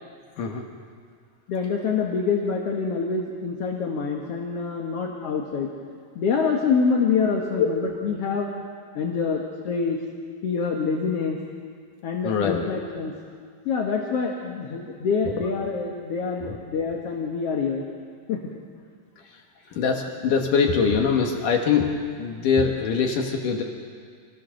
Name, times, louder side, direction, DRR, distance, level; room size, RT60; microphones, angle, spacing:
voice 1, 1.5-5.7 6.2-8.5 9.0-10.0 10.4-11.4 12.0-13.1 13.7-17.8 18.3-18.4, left 5 dB, 55° left, 1 dB, 2.1 m, -26 dB
voice 2, 12.2-12.6 14.9-15.0 16.4-16.5 19.7-21.9 22.2-23.6, left 6 dB, 70° left, 2 dB, 2.8 m, -23 dB
27.0 x 17.5 x 6.4 m, 2.1 s
omnidirectional pair, 4.0 m